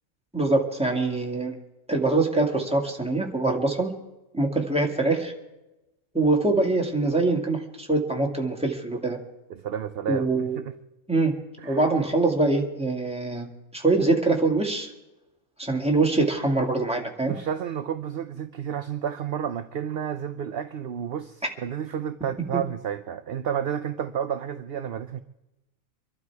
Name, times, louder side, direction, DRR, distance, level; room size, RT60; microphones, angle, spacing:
voice 1, 0.3-1.5 1.9-3.9 4.3-5.3 6.1-9.2 10.1-10.6 11.1-11.3 11.6-13.5 13.7-14.9 15.6-17.3 22.5-22.6, right 2 dB, 5° right, 1 dB, 2.2 m, -24 dB
voice 2, 9.5-10.7 11.6-11.9 17.3-25.2, right 8 dB, 55° right, 11 dB, 0.7 m, -31 dB
25.0 x 12.0 x 4.8 m, 0.99 s
omnidirectional pair, 1.5 m